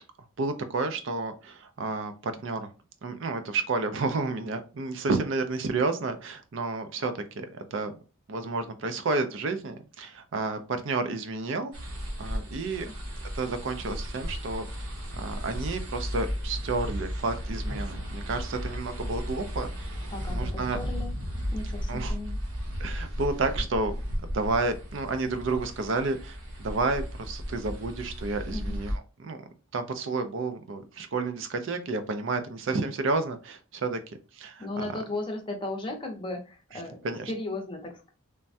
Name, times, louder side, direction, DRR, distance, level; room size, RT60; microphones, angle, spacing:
voice 1, 0.4-2.7 3.0-7.9 8.3-11.7 12.2-12.9 13.3-20.0 20.3-20.8 21.9-22.1 22.8-24.0 24.3-29.4 29.7-34.0 34.3-34.7 36.7-37.3, right 3 dB, 60° right, 8 dB, 0.4 m, -31 dB
sound 1, 11.7-29.0, equal, 80° right, 0.9 m, -34 dB
voice 2, 20.1-21.1 21.5-22.4 28.5-28.8 34.6-38.1, left 2 dB, 20° left, 2 dB, 0.6 m, -36 dB
3.3 x 2.2 x 2.6 m, 0.33 s
head